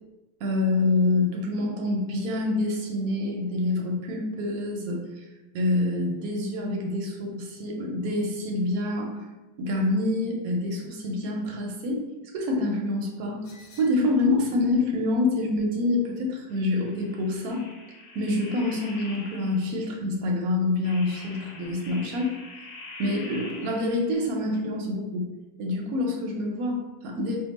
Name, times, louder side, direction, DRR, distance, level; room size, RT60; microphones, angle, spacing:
voice 1, 0.4-5.2 5.5-9.3 9.6-12.0 12.3-13.4 13.8-17.6 18.1-22.3 23.0-25.3 25.6-27.4, left 2 dB, 70° right, 0 dB, 0.9 m, -26 dB
sound 1, 13.4-14.7 16.5-19.9 20.8-24.2, left 2 dB, 85° left, 1.3 m, -45 dB
2.9 x 2.1 x 3.9 m, 1.1 s
omnidirectional pair, 1.9 m